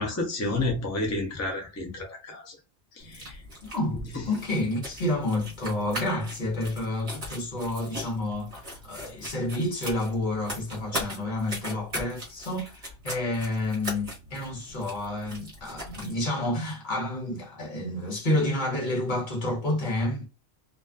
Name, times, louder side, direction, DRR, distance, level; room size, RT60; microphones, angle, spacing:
voice 1, 0.0-2.6 3.0-3.4, left 2 dB, 25° left, 0.3 m, -30 dB
sound 1, 3.0-16.2, equal, 35° right, 1.0 m, -40 dB
voice 2, 3.6-20.3, left 1 dB, 45° left, 1.0 m, -29 dB
2.5 x 2.3 x 2.2 m
omnidirectional pair, 1.2 m